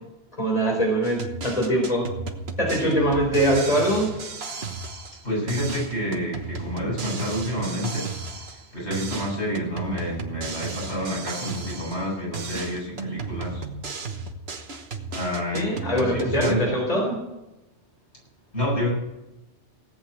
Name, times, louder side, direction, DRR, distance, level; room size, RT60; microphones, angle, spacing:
voice 1, 0.4-2.1 2.6-4.1 15.5-17.2, right 1 dB, 35° left, -1 dB, 4.2 m, -22 dB
sound 1, 1.0-5.2 5.5-8.7 8.9-12.1 12.3-16.5, right 4 dB, 65° right, 1.5 m, -34 dB
voice 2, 5.2-13.6 15.1-16.7 18.5-18.9, equal, 80° left, -4 dB, 7.8 m, -29 dB
18.0 x 8.1 x 8.8 m, 0.95 s
omnidirectional pair, 1.2 m